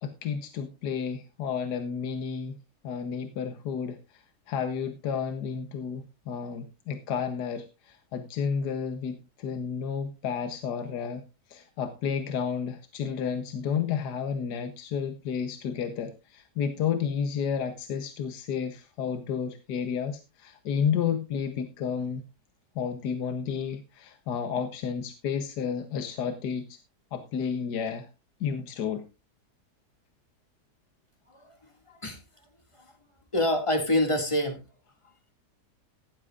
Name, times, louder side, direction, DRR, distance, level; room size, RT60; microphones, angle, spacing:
voice 1, 0.0-2.5 2.8-11.2 11.5-22.2 22.7-26.8 27.1-28.1 28.4-29.0, left 7 dB, 80° left, 7 dB, 1.6 m, -31 dB
voice 2, 31.9-32.2 33.3-34.6, left 1 dB, 20° left, 4 dB, 2.2 m, -26 dB
15.0 x 12.0 x 2.5 m, 0.27 s
omnidirectional pair, 1.7 m